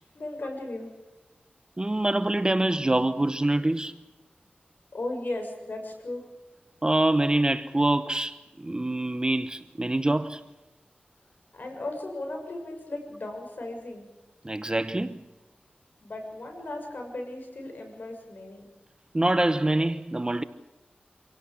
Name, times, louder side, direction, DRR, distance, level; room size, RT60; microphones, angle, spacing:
voice 1, 0.1-0.9 4.9-6.3 11.5-14.1 16.0-18.7, left 2 dB, 55° left, 6.6 m, -36 dB
voice 2, 1.8-3.9 6.8-10.4 14.4-15.2 19.1-20.4, right 1 dB, 25° right, 1.0 m, -25 dB
26.5 x 17.0 x 8.6 m
wide cardioid pair, 65°, 4 cm